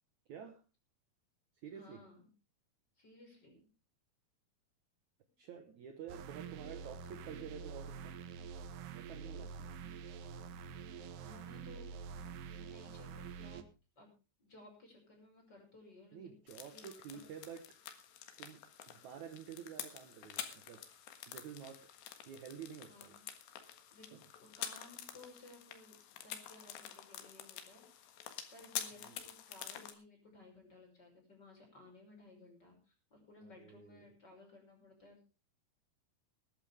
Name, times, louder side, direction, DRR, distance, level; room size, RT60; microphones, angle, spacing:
voice 1, 0.3-0.6 1.5-2.0 5.4-8.2 8.9-9.7 16.1-17.7 18.4-20.8 21.3-21.9 22.3-23.2 24.1-24.2 29.0-29.1 33.4-34.1, right 8 dB, 60° right, 7 dB, 2.1 m, -50 dB
voice 2, 1.7-2.2 3.0-3.7 11.2-11.9 12.6-13.6 14.0-14.1 14.4-16.4 16.7-16.9 22.9-23.2 23.9-24.1 24.4-28.1 28.5-35.3, left 2 dB, 25° left, 1 dB, 6.2 m, -58 dB
sound 1, 6.1-13.6, right 6 dB, 80° right, 3.3 m, -47 dB
sound 2, 16.5-29.9, left 10 dB, 90° left, 3.7 m, -48 dB
20.0 x 11.5 x 3.5 m, 0.33 s
omnidirectional pair, 4.7 m